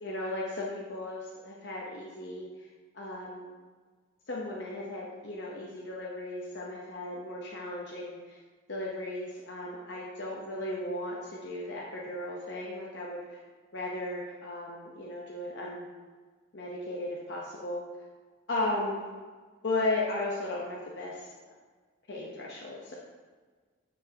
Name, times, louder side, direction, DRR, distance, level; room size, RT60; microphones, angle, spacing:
voice 1, 0.0-2.5 2.9-3.6 4.3-8.4 8.7-13.4 13.7-15.9 16.5-17.8 18.5-19.1 19.6-21.3 22.1-22.9, left 2 dB, 55° left, -4 dB, 0.8 m, -35 dB
9.7 x 4.5 x 2.8 m, 1.5 s
head